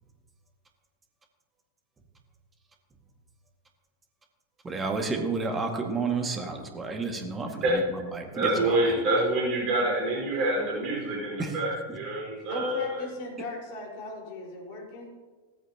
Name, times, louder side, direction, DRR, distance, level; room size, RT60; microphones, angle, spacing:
voice 1, 4.6-7.8 8.1-8.8 11.4-11.5, right 4 dB, 15° right, 3 dB, 1.9 m, -31 dB
voice 2, 8.3-13.0, right 1 dB, 35° right, -3 dB, 4.8 m, -27 dB
voice 3, 12.5-15.1, left 1 dB, 45° left, -1 dB, 4.7 m, -38 dB
16.5 x 14.5 x 2.9 m, 1.4 s
figure-of-eight pair, 90°, 0 cm